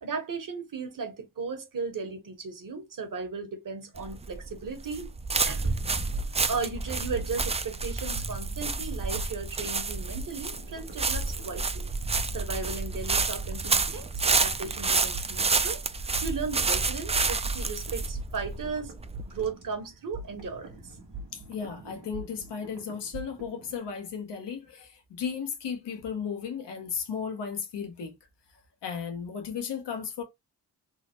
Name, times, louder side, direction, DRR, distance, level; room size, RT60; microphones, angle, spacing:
voice 1, 0.0-5.1 5.5-5.7 6.1-6.2 6.5-11.9 12.3-15.8 16.2-18.9 19.3-21.0, right 4 dB, 55° right, 1.2 m, -36 dB
sound 1, 4.0-19.5, right 4 dB, 15° right, 0.3 m, -29 dB
sound 2, 5.6-7.7 8.1-23.8, right 2 dB, 90° right, 1.1 m, -44 dB
voice 2, 6.1-6.5 21.3-28.2 28.8-30.2, left 6 dB, 85° left, 1.0 m, -35 dB
3.7 x 2.1 x 2.9 m
cardioid pair, 65°, 40 cm